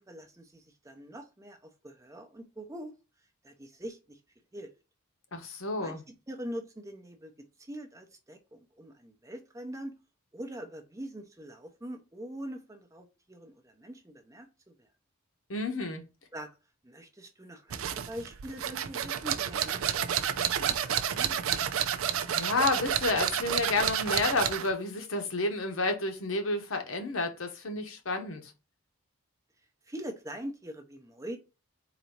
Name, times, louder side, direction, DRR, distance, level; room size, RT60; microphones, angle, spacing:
voice 1, 0.0-2.9 3.4-4.2 4.5-4.7 5.8-6.0 6.3-7.3 7.6-9.9 10.3-14.9 16.3-16.5 16.8-21.4 29.8-31.4, equal, 15° right, 0.6 m, -43 dB
voice 2, 5.3-6.0 15.5-16.1 22.3-28.5, left 2 dB, 70° left, 0.9 m, -30 dB
sound 1, 17.7-24.7, right 9 dB, 75° right, 0.5 m, -30 dB
4.0 x 2.7 x 4.5 m
head